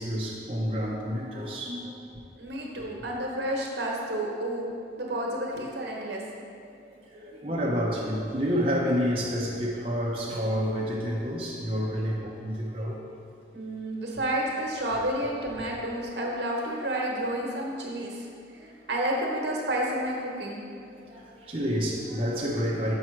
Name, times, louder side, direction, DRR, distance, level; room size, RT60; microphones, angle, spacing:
voice 1, 0.0-2.1 6.8-13.0 18.5-18.7 20.8-23.0, equal, 30° right, -4 dB, 0.7 m, -29 dB
voice 2, 2.4-4.7 5.0-6.2 13.5-18.3 18.9-20.6, right 1 dB, 80° right, -1 dB, 1.1 m, -30 dB
6.0 x 5.5 x 4.5 m, 2.4 s
head